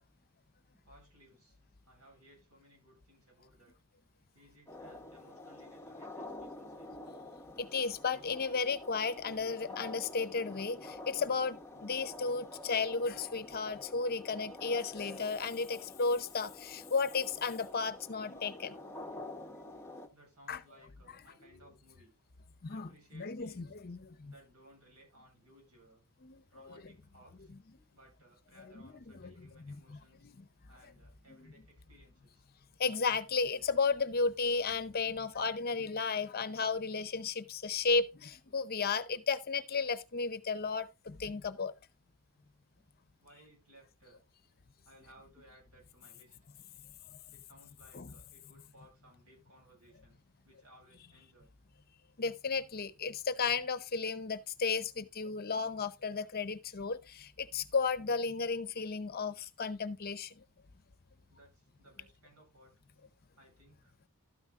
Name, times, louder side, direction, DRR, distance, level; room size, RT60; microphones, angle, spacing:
voice 1, 0.7-1.6 1.8-3.7 4.3-7.0 18.8-19.2 20.1-22.1 22.7-23.7 24.2-26.0 26.5-27.5 27.9-30.3 30.7-32.5 42.8-42.9 43.2-44.2 44.8-46.4 47.3-51.5 61.3-62.7 63.3-64.0, right 1 dB, 75° right, 7.6 m, -62 dB
sound 1, 4.7-20.1, left 2 dB, 10° left, 0.8 m, -48 dB
voice 2, 7.6-19.0 20.5-20.6 22.6-24.3 26.2-26.4 28.8-28.9 29.2-29.3 29.7-29.8 30.2-30.4 31.3-31.4 32.8-41.7 47.9-48.1 52.2-60.3, left 4 dB, 45° left, 0.7 m, -34 dB
12.5 x 9.5 x 2.5 m
head